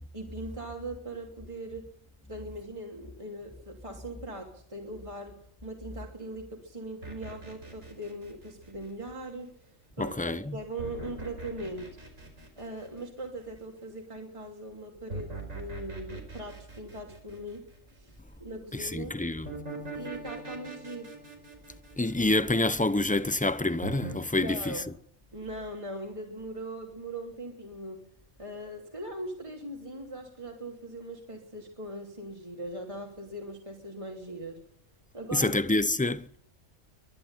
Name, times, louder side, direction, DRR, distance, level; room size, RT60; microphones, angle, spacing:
voice 1, 0.1-1.9 2.3-5.4 5.6-11.9 12.6-17.6 17.9-18.1 18.4-19.2 19.9-21.1 24.4-24.9 25.3-28.0 28.4-34.6 35.1-35.5, right 1 dB, 25° right, 3.0 m, -40 dB
sound 1, 7.0-9.2 10.8-13.4 15.1-17.9 19.5-22.9 23.8-24.2, right 3 dB, 80° right, 5.2 m, -42 dB
voice 2, 10.0-10.6 18.7-19.5 22.0-24.7 35.3-36.4, left 2 dB, 10° left, 0.5 m, -27 dB
23.5 x 11.5 x 9.8 m
omnidirectional pair, 1.3 m